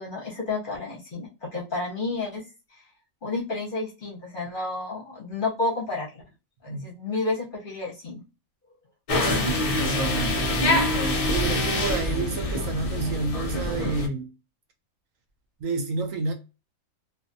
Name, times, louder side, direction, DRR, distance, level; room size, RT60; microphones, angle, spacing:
voice 1, 0.0-2.4 3.2-6.2 6.6-8.2, left 3 dB, 45° left, 0.8 m, -31 dB
sound 1, 9.1-14.1, left 1 dB, 70° left, 0.3 m, -25 dB
voice 2, 9.6-10.8 11.2-14.3 15.6-16.3, right 3 dB, 70° right, 0.9 m, -30 dB
2.5 x 2.3 x 2.5 m
omnidirectional pair, 1.5 m